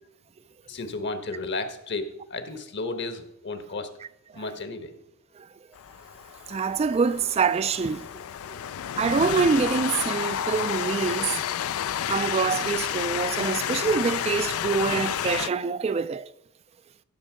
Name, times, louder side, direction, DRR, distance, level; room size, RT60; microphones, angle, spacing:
voice 1, 0.7-3.9 4.3-4.9, left 3 dB, 55° left, 1.3 m, -33 dB
Train, 5.7-15.5, left 9 dB, 70° left, 0.4 m, -30 dB
voice 2, 6.5-8.1 9.0-11.4 12.1-16.3, right 5 dB, 30° right, 0.3 m, -25 dB
15.0 x 6.6 x 5.0 m
head